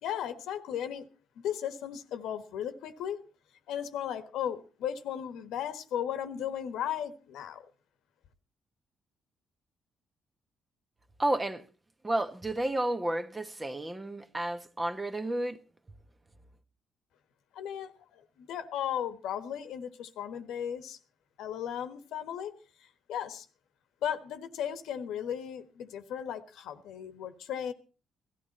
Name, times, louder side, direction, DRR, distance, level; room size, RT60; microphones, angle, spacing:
voice 1, 0.0-1.0 1.3-3.2 3.7-7.6 17.5-21.0 21.4-22.5 22.8-23.4 24.0-27.7, left 9 dB, 85° left, 1.4 m, -36 dB
voice 2, 11.2-11.6 12.0-15.6, right 1 dB, 20° right, 1.2 m, -31 dB
17.0 x 13.5 x 4.2 m
cardioid pair, 90°, 0 cm